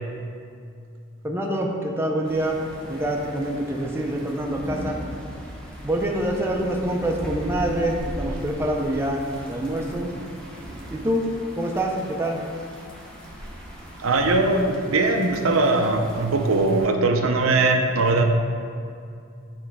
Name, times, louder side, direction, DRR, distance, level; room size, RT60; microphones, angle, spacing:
voice 1, 1.2-2.6 2.9-5.0 5.8-9.2 9.5-10.1 10.9-11.2 11.6-12.4, right 1 dB, 10° right, 0 dB, 0.5 m, -25 dB
sound 1, 2.2-16.9, equal, 5° left, 0.9 m, -39 dB
voice 2, 14.0-18.2, right 2 dB, 75° right, 4 dB, 0.6 m, -20 dB
8.8 x 3.2 x 4.7 m, 2.3 s
head